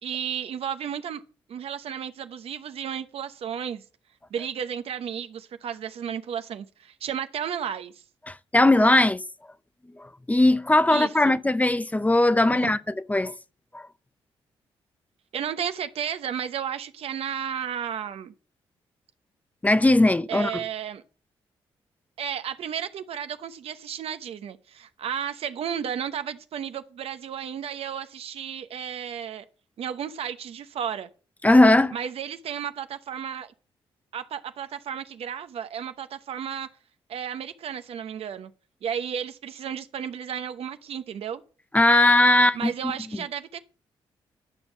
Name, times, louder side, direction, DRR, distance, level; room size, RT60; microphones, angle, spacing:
voice 1, 0.0-1.2 1.5-3.8 4.3-7.9 10.9-11.4 12.5-12.7 15.3-18.3 20.3-21.0 22.2-29.4 29.8-31.1 31.9-33.5 34.1-36.7 37.1-38.5 38.8-41.4 42.5-43.6, right 8 dB, 70° right, 0.9 m, -33 dB
voice 2, 8.3-9.2 10.3-12.8 13.1-13.3 13.7-13.9 19.6-20.6 31.4-31.9 41.7-42.9, left 2 dB, 15° left, 0.6 m, -19 dB
11.0 x 5.4 x 7.2 m
supercardioid pair, 60°, 10 cm